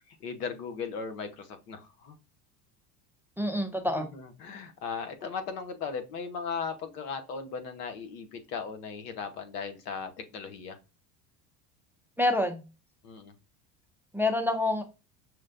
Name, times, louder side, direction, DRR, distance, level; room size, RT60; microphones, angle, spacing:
voice 1, 0.2-2.2 4.0-10.8 13.0-13.3, left 5 dB, 85° left, 1.0 m, -37 dB
voice 2, 3.4-4.1 12.2-12.6 14.1-14.8, left 2 dB, 5° right, 0.4 m, -27 dB
6.2 x 2.1 x 2.4 m
hypercardioid pair, 90°, 46 cm